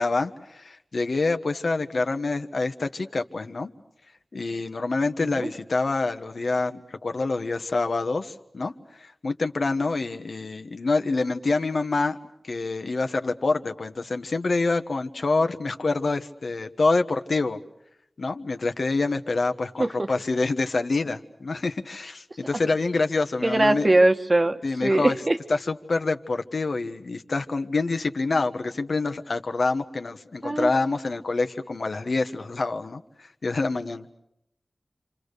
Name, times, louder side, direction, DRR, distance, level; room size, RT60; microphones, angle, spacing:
voice 1, 0.0-3.7 4.3-12.2 12.4-17.6 18.2-24.0 24.6-25.2 25.5-34.1, left 3 dB, 80° left, 7 dB, 1.4 m, -26 dB
voice 2, 23.4-25.4 30.4-30.7, right 2 dB, 40° right, 7 dB, 1.5 m, -21 dB
28.5 x 26.5 x 6.8 m, 0.80 s
wide cardioid pair, 50°, 0 cm